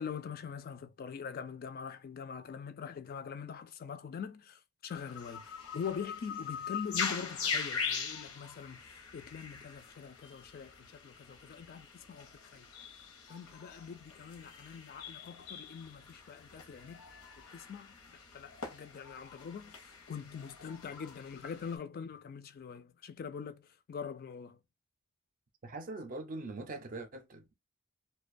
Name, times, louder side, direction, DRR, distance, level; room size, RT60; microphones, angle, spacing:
voice 1, 0.0-12.7 13.3-17.0 17.5-17.9 18.3-24.6, left 6 dB, 45° left, 0.3 m, -43 dB
sound 1, 4.9-21.8, left 5 dB, 85° left, 0.7 m, -42 dB
voice 2, 25.6-27.5, right 2 dB, 40° right, 0.5 m, -42 dB
2.4 x 2.2 x 2.5 m
head